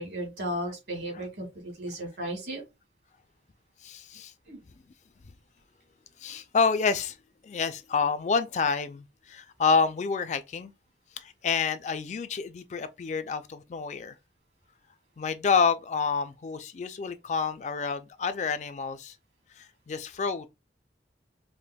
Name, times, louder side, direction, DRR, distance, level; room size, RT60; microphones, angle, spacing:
voice 1, 0.0-2.6 4.5-4.6, right 1 dB, 70° right, 1.8 m, -35 dB
voice 2, 3.8-4.3 6.2-7.2 7.4-10.7 11.2-14.2 15.2-19.1 19.6-20.5, left 5 dB, 40° left, 0.3 m, -28 dB
5.0 x 2.1 x 2.2 m
head